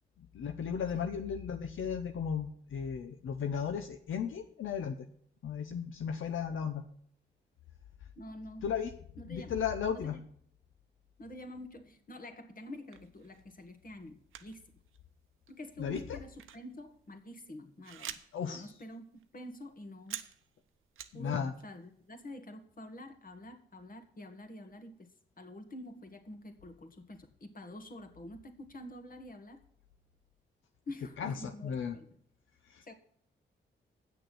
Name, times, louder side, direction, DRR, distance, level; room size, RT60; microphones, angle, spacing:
voice 1, 0.3-5.0 5.4-6.8 8.6-8.9 9.3-10.2 15.8-16.2 18.3-18.7 21.1-21.5 31.2-31.9 32.7-32.8, left 7 dB, 75° left, 7 dB, 0.8 m, -35 dB
voice 2, 8.2-8.7 9.2-9.6 9.9-10.2 11.2-14.6 15.5-19.0 19.3-20.2 21.1-25.1 25.4-29.6 30.9-32.1 32.8-32.9, left 1 dB, 45° left, 7 dB, 1.9 m, -47 dB
sound 1, 12.8-13.4 14.3-14.6 14.9-15.0 15.4-18.5 18.8-18.9 19.2-21.2 21.5-22.1, right 10 dB, 85° right, 0.8 m, -47 dB
8.4 x 6.6 x 7.7 m, 0.64 s
cardioid pair, 60°, 20 cm